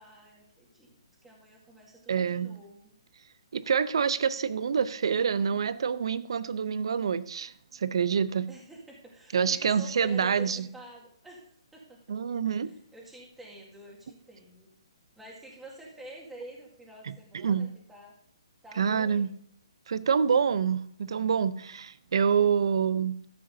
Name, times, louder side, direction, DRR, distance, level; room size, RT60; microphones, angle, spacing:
voice 1, 0.0-2.9 8.5-12.2 12.6-14.7 15.2-18.1 18.6-19.3 22.7-23.0, right 1 dB, 5° right, 2.0 m, -48 dB
voice 2, 2.1-2.5 3.5-8.5 9.3-10.7 12.1-12.7 17.4-17.7 18.8-19.3 19.9-23.2, right 6 dB, 65° right, 0.6 m, -26 dB
14.0 x 7.5 x 2.7 m
hypercardioid pair, 145°, 3 cm